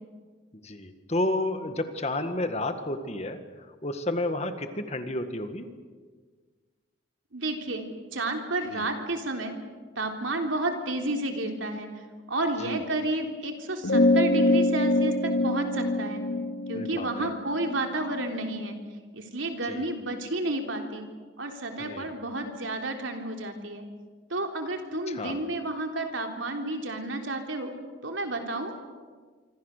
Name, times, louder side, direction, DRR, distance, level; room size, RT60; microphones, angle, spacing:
voice 1, 0.6-5.7 8.7-8.9 12.6-12.8 16.7-17.3 19.7-19.9 21.8-22.1 25.1-25.4, left 1 dB, 35° left, 8 dB, 1.8 m, -31 dB
voice 2, 7.3-7.9 8.1-9.6 10.0-11.9 12.3-16.2 16.7-18.8 19.1-21.0 21.4-23.8 24.3-27.7 28.0-28.7, right 2 dB, 80° right, 3 dB, 3.5 m, -31 dB
sound 1, 13.8-18.7, left 2 dB, 75° left, 2.5 m, -25 dB
27.0 x 25.0 x 6.7 m, 1.5 s
head